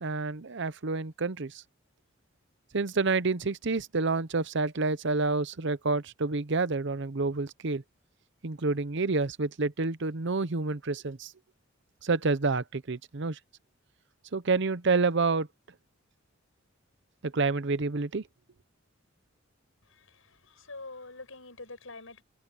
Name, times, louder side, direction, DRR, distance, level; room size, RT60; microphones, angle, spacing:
voice 1, 0.0-1.6 2.7-7.8 8.4-11.3 12.0-13.4 14.3-15.5 17.2-18.2, right 3 dB, 60° right, 0.8 m, -28 dB
voice 2, 19.8-22.2, left 3 dB, 90° left, 6.3 m, -46 dB
head